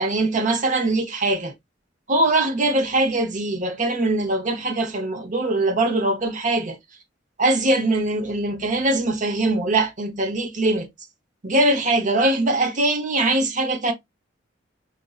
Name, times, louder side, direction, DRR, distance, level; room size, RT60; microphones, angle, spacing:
voice 1, 0.0-1.5 2.1-6.8 7.4-10.9 11.4-13.9, right 2 dB, 45° right, 0.8 m, -22 dB
5.2 x 2.5 x 2.3 m
head